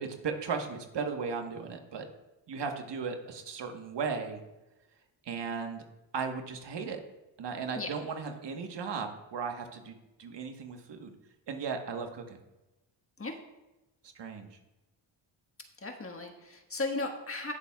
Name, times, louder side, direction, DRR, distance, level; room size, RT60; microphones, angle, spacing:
voice 1, 0.0-2.1 2.5-4.4 5.2-5.8 6.1-7.0 7.4-11.1 11.5-12.4 14.0-14.6, right 5 dB, 60° right, 4 dB, 1.4 m, -36 dB
voice 2, 15.8-17.5, left 2 dB, 30° left, 3 dB, 1.5 m, -35 dB
18.0 x 6.9 x 2.4 m, 1.0 s
cardioid pair, 70°, 48 cm